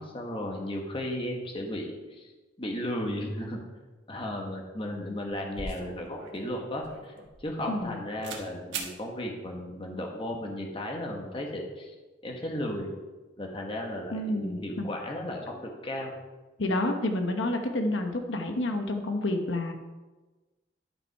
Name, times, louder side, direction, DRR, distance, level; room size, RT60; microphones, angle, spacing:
voice 1, 0.0-2.3 2.6-3.6 4.1-7.1 7.4-11.9 12.2-12.9 13.4-16.1, left 1 dB, 30° left, 1 dB, 1.3 m, -35 dB
sound 1, 5.6-7.9 8.2-8.4 8.7-8.9, right 4 dB, 85° right, 1.5 m, -40 dB
voice 2, 7.7-8.0 14.1-14.9 16.6-19.7, left 1 dB, 85° left, 5 dB, 0.9 m, -29 dB
11.0 x 5.3 x 4.6 m, 1.2 s
head